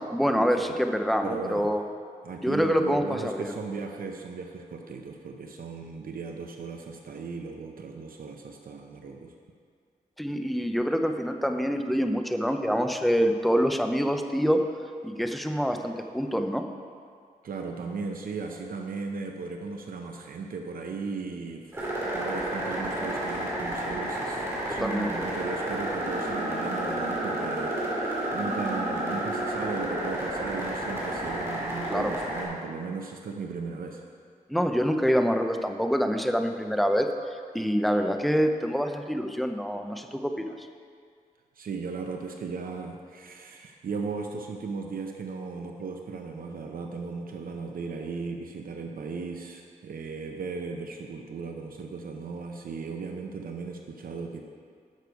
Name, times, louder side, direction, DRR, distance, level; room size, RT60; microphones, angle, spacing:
voice 1, 0.0-1.8 2.4-3.5 10.2-14.6 15.0-16.6 24.7-25.1 31.9-32.1 34.5-37.1 37.5-40.7, equal, ahead, 5 dB, 0.6 m, -26 dB
voice 2, 1.2-1.7 2.2-9.3 17.4-21.8 22.1-34.0 41.6-54.4, right 4 dB, 75° right, 3 dB, 0.7 m, -36 dB
sound 1, 21.7-32.4, right 1 dB, 15° right, 2.6 m, -31 dB
11.0 x 6.7 x 4.8 m, 2.1 s
wide cardioid pair, 110°, 15 cm